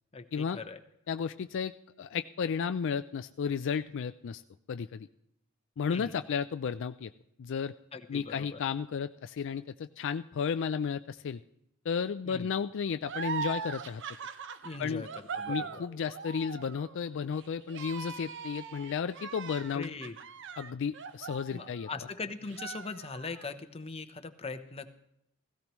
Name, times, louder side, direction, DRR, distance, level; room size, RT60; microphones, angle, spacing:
voice 1, 0.1-0.8 5.9-6.2 7.9-8.6 12.2-12.5 14.6-15.8 19.7-20.2 21.5-24.9, left 4 dB, 30° left, 8 dB, 0.8 m, -41 dB
voice 2, 1.1-1.7 2.0-4.4 4.7-5.1 5.8-7.1 7.4-7.7 8.1-11.4 11.9-14.0 14.8-15.1 15.5-19.9 20.6-21.9, left 6 dB, 60° left, 10 dB, 0.4 m, -33 dB
sound 1, 13.0-22.1 22.5-23.5, right 6 dB, 60° right, 0.7 m, -41 dB
16.5 x 16.0 x 3.1 m, 0.76 s
head